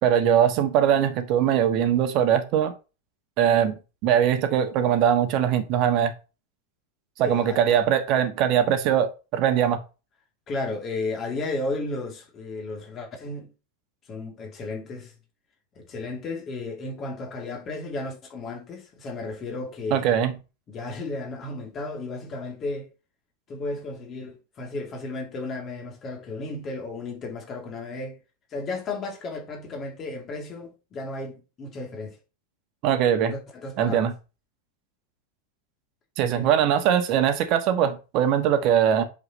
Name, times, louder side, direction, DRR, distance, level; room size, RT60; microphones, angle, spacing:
voice 1, 0.0-2.7 3.4-3.7 4.0-6.1 7.2-9.8 19.9-20.3 32.8-33.3 33.8-34.1 36.2-39.0, right 9 dB, 40° right, 1.4 m, -21 dB
voice 2, 7.2-7.8 10.5-13.5 14.1-15.1 15.7-20.1 20.7-22.9 23.5-28.2 28.5-32.2 33.3-34.1 36.3-36.5, left 2 dB, 30° left, 3.0 m, -34 dB
8.0 x 6.8 x 3.1 m
figure-of-eight pair, 90°, 0 cm